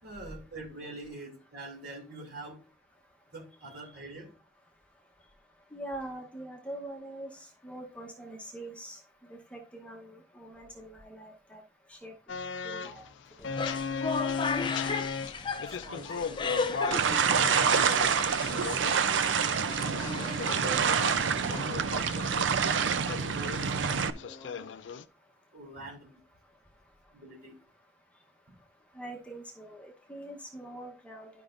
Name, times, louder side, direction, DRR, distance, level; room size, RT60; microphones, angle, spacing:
voice 1, 0.0-2.6 3.3-4.3 15.5-19.0 19.5-21.0 22.5-24.7 25.5-26.2 27.1-27.6, right 2 dB, 55° right, 0 dB, 2.8 m, -46 dB
voice 2, 5.7-9.0 9.3-11.6 11.9-12.1 12.6-13.1 13.4-13.5 14.8-15.0 23.6-23.7 29.0-31.3, right 1 dB, 5° left, 0 dB, 0.9 m, -43 dB
sound 1, 12.3-25.0, left 6 dB, 75° left, 0.4 m, -37 dB
sound 2, 13.4-22.4, left 4 dB, 25° left, 0.6 m, -36 dB
sound 3, 16.9-24.1, right 6 dB, 90° right, 0.5 m, -27 dB
11.5 x 5.3 x 2.5 m, 0.35 s
head